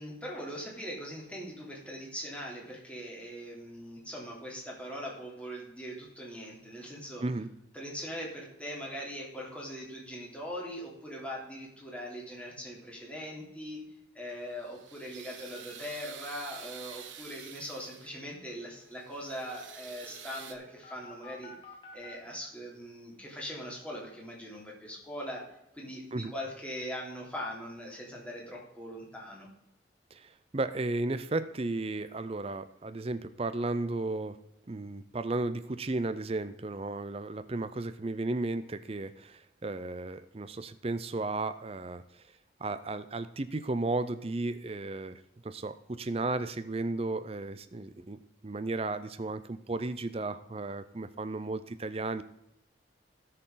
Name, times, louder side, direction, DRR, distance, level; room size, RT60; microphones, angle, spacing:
voice 1, 0.0-7.2 7.7-13.8 14.1-21.5 21.9-25.5 25.7-29.5, equal, 5° left, -3 dB, 3.2 m, -41 dB
voice 2, 7.2-7.5 26.1-26.3 30.1-34.4 34.7-42.2 42.6-52.2, right 2 dB, 30° right, 12 dB, 0.5 m, -34 dB
sound 1, 14.3-18.3 18.8-20.5, right 8 dB, 85° right, 1.4 m, -48 dB
sound 2, 16.9-17.0 17.2-17.3 17.6-22.2, left 3 dB, 25° left, 1.8 m, -54 dB
17.5 x 6.7 x 3.8 m, 0.83 s
head